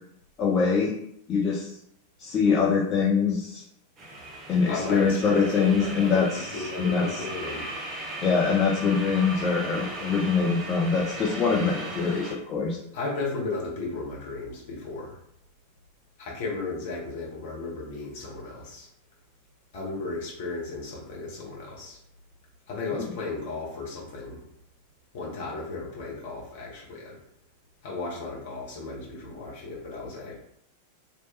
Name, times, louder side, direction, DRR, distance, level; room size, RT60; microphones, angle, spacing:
voice 1, 0.4-0.9 1.3-1.8 2.2-3.6 4.5-7.2 8.2-12.8, left 5 dB, 30° left, -3 dB, 0.5 m, -24 dB
sound 1, 4.0-12.3, right 1 dB, 25° right, 0.8 m, -37 dB
voice 2, 4.6-7.7 12.9-15.1 16.2-18.9 19.7-22.0 22.7-24.4 25.1-27.1 27.8-30.3, left 3 dB, 50° left, -3 dB, 1.4 m, -34 dB
3.1 x 2.9 x 3.1 m, 0.72 s
figure-of-eight pair, 90°, 0 cm